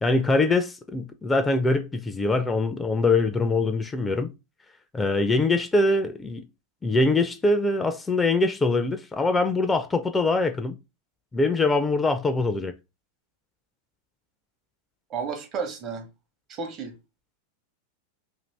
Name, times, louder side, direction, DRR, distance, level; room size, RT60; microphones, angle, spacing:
voice 1, 0.0-4.3 4.9-6.4 6.8-10.8 11.3-12.7, left 2 dB, 15° left, 0.5 m, -23 dB
voice 2, 15.1-16.1 16.5-17.0, right 5 dB, 40° right, 0.9 m, -32 dB
2.6 x 2.5 x 3.3 m
hypercardioid pair, 100°, 0 cm